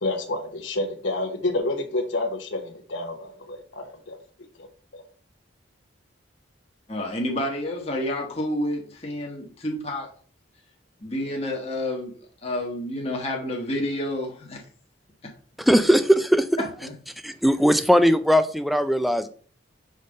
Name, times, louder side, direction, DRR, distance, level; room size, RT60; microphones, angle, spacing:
voice 1, 0.0-4.2 4.6-4.7 4.9-5.0, left 2 dB, 65° left, 5 dB, 1.0 m, -29 dB
voice 2, 6.9-10.1 11.0-12.1 12.4-14.6 16.8-16.9, left 1 dB, 30° left, -1 dB, 1.1 m, -29 dB
voice 3, 15.7-16.5 17.2-19.3, equal, ahead, 11 dB, 0.3 m, -19 dB
5.3 x 4.0 x 5.2 m, 0.44 s
head